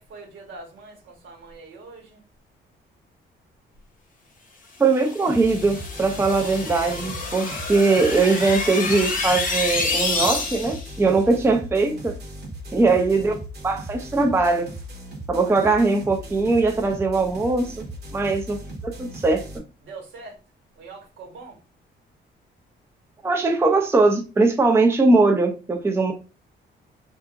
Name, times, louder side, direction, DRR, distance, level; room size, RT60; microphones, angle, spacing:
voice 1, 0.0-2.2 11.2-11.5 12.8-13.0 19.8-20.4 20.7-21.6, right 3 dB, 75° right, 1.4 m, -43 dB
voice 2, 4.8-12.1 12.7-13.3 13.6-14.7 15.3-17.9 18.1-18.6 18.8-19.4 23.2-26.1, right 3 dB, 10° right, 0.5 m, -20 dB
sound 1, 4.9-10.9, left 3 dB, 40° left, 0.7 m, -28 dB
sound 2, 5.3-19.6, right 1 dB, 55° right, 1.0 m, -38 dB
2.7 x 2.5 x 2.5 m
cardioid pair, 90°, 20 cm